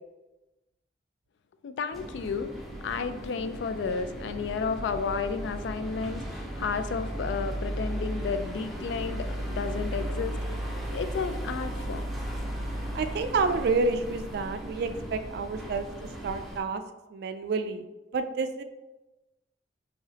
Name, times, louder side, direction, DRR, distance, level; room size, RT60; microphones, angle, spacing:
voice 1, 1.6-2.5 2.8-10.6 10.9-12.1, left 5 dB, 80° left, 10 dB, 0.3 m, -32 dB
sound 1, 1.9-16.6, right 1 dB, ahead, 0.6 m, -36 dB
voice 2, 12.9-15.9 16.2-16.8 17.1-17.8 18.1-18.6, right 4 dB, 60° right, 9 dB, 0.3 m, -29 dB
4.8 x 2.8 x 2.8 m, 1.1 s
head